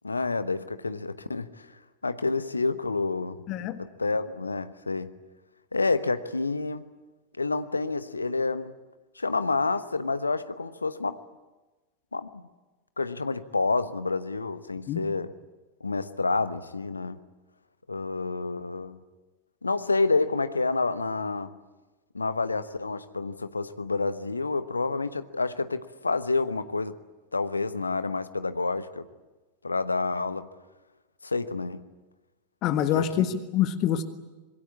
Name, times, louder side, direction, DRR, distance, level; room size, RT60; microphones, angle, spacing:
voice 1, 0.0-1.7 2.0-3.4 3.8-5.1 5.7-6.9 7.4-8.7 9.2-11.2 12.1-12.4 13.0-15.3 15.8-17.2 17.9-19.0 19.6-21.6 22.1-27.0 27.3-29.0 29.6-30.5 31.2-31.8 32.9-33.2, left 3 dB, 80° left, 12 dB, 1.1 m, -28 dB
voice 2, 3.5-3.8 14.9-15.0 32.6-34.0, left 10 dB, 40° left, 9 dB, 1.5 m, -26 dB
26.0 x 22.5 x 8.5 m, 1.2 s
figure-of-eight pair, 90°, 0 cm